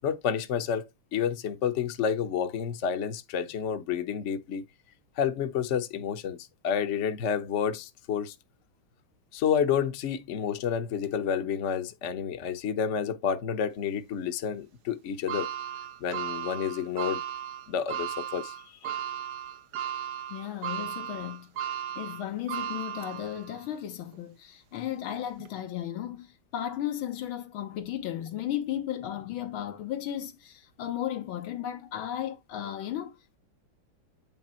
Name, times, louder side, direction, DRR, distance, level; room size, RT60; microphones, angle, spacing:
voice 1, 0.0-4.6 5.2-6.4 6.6-8.3 9.3-15.5 16.0-17.2 17.7-18.5, left 7 dB, 50° left, 0.9 m, -29 dB
sound 1, 15.3-23.6 24.1-24.2 25.4-25.5, right 10 dB, 80° right, 1.6 m, -36 dB
voice 2, 20.3-21.5 22.0-33.4, left 11 dB, 85° left, 1.8 m, -35 dB
9.1 x 3.3 x 4.3 m
omnidirectional pair, 2.2 m